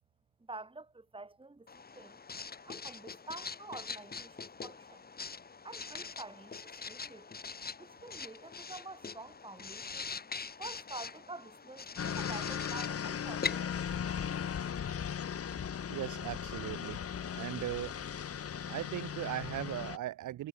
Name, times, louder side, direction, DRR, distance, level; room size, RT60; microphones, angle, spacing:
voice 1, 0.4-1.7 1.9-2.2 2.6-5.0 5.6-7.4 7.8-10.1 10.6-13.8, right 2 dB, 15° right, 6.5 m, -48 dB
Writing, 1.7-14.9, left 5 dB, 30° left, 2.8 m, -43 dB
sound 1, 12.0-20.0, left 8 dB, 50° left, 2.7 m, -37 dB
voice 2, 15.9-17.0 17.3-17.9 18.7-20.5, right 13 dB, 75° right, 1.9 m, -38 dB
cardioid pair, 90°, 30 cm